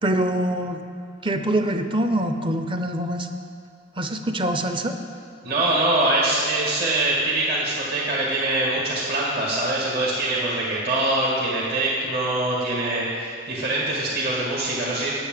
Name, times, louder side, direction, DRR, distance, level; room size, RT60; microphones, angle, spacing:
voice 1, 0.0-0.8 1.2-3.3 4.0-5.0, right 1 dB, 25° right, 7 dB, 0.6 m, -24 dB
voice 2, 5.4-15.2, right 2 dB, 50° right, -6 dB, 1.9 m, -23 dB
10.0 x 8.6 x 7.7 m, 2.5 s
head